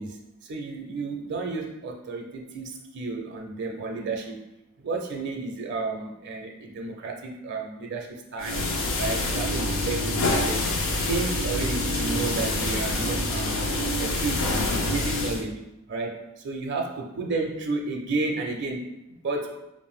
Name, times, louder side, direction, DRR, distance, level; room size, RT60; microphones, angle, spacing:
voice 1, 0.0-4.4 4.8-10.7 11.0-13.6 14.0-19.6, right 3 dB, 55° right, 2 dB, 0.5 m, -32 dB
sound 1, 8.4-15.4, left 1 dB, 65° left, 0.7 m, -26 dB
5.0 x 2.5 x 3.5 m, 0.91 s
head